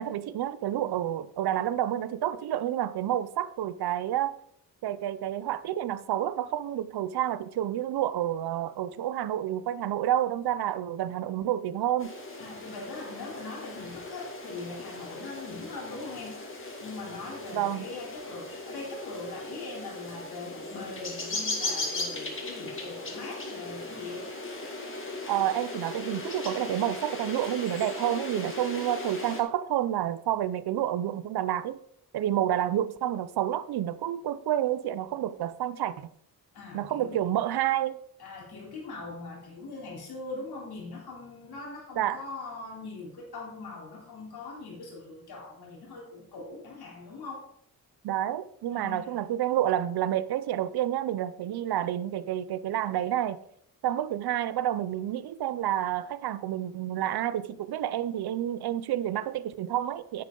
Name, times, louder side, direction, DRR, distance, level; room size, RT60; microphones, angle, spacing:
voice 1, 0.0-4.4 4.8-12.1 17.5-17.9 25.3-31.8 32.1-36.1 36.7-38.0 42.0-42.2 48.0-53.4 53.8-60.2, right 12 dB, 90° right, 0.6 m, -29 dB
sound 1, 12.0-29.4, left 2 dB, 35° left, 2.2 m, -38 dB
voice 2, 12.4-16.4 16.8-24.2 36.5-37.2 38.2-47.5 48.7-49.2, left 3 dB, 80° left, 3.6 m, -41 dB
10.5 x 8.4 x 3.9 m
cardioid pair, 105°, 37 cm